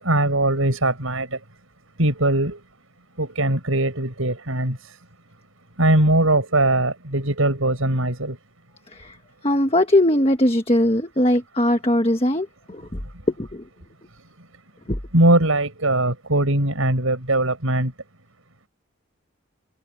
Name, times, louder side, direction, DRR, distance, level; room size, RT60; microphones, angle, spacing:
voice 1, 0.0-1.3 2.0-2.6 3.2-4.8 5.8-8.4 15.1-17.9, right 1 dB, 85° right, 6.6 m, -20 dB
voice 2, 8.9-9.2 9.4-13.0 13.4-13.6 14.9-15.0, left 1 dB, 25° left, 1.5 m, -20 dB
head